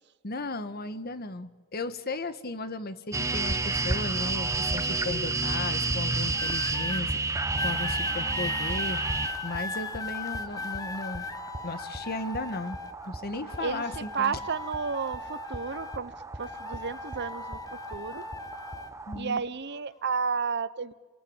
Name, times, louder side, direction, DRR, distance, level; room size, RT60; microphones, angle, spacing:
voice 1, 0.2-9.0 9.4-11.3 11.6-12.8 13.1-14.4 19.1-19.4, left 2 dB, 50° left, 11 dB, 1.6 m, -35 dB
sound 1, 3.1-19.2, right 3 dB, 15° right, 1.0 m, -32 dB
Keyboard (musical), 5.6-10.6, right 4 dB, 85° right, 2.4 m, -51 dB
sound 2, 6.3-7.0 7.6-13.1 13.5-16.1 16.4-18.9 19.7-20.0, left 3 dB, 20° left, 1.3 m, -38 dB
voice 2, 13.6-18.2 19.1-20.9, right 5 dB, 55° right, 16 dB, 0.9 m, -32 dB
29.0 x 22.5 x 9.0 m, 1.4 s
head